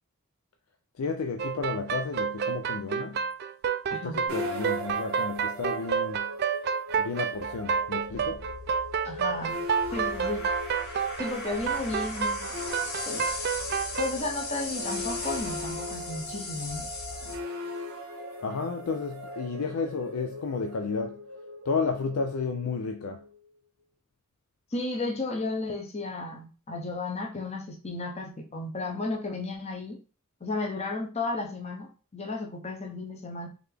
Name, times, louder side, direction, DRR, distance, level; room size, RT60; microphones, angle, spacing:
voice 1, 1.0-3.2 3.9-6.3 6.9-8.5 18.4-21.3 21.7-23.3, left 4 dB, 85° left, 0.4 m, -32 dB
sound 1, 1.4-14.1, right 7 dB, 50° right, 0.3 m, -29 dB
sound 2, 4.3-23.4, left 1 dB, 80° right, 0.9 m, -39 dB
sound 3, 7.3-17.4, left 3 dB, 50° left, 1.1 m, -39 dB
voice 2, 9.0-9.6 9.9-10.5 11.2-12.5 13.1-13.3 14.0-16.9 24.7-30.0 30.4-33.5, left 2 dB, 30° left, 0.8 m, -33 dB
3.7 x 3.4 x 3.4 m
head